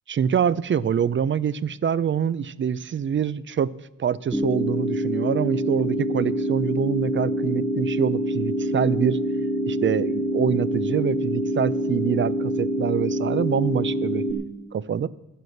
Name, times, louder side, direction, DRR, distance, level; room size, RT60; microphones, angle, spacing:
voice 1, 0.1-3.7 4.0-9.2 9.6-14.2 14.7-15.1, right 8 dB, 40° right, 18 dB, 0.4 m, -25 dB
sound 1, 4.3-14.3, equal, ahead, 1.3 m, -26 dB
12.0 x 8.0 x 7.8 m, 0.98 s
wide cardioid pair, 140°, 32 cm